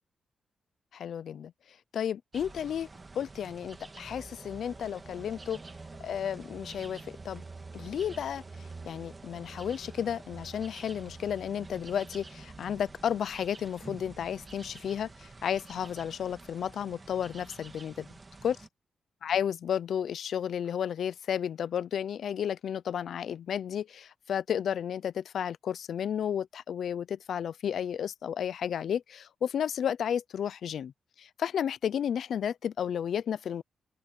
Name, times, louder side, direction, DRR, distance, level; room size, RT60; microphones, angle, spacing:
voice 1, 0.9-1.5 1.9-2.9 3.2-5.6 6.0-7.4 7.7-8.4 8.9-18.1 18.4-18.6 19.2-30.9 31.2-33.6, left 8 dB, 75° left, 0.6 m, -32 dB
sound 1, 2.3-18.7, right 3 dB, 30° right, 2.5 m, -47 dB
open air
cardioid pair, 90°, 0 cm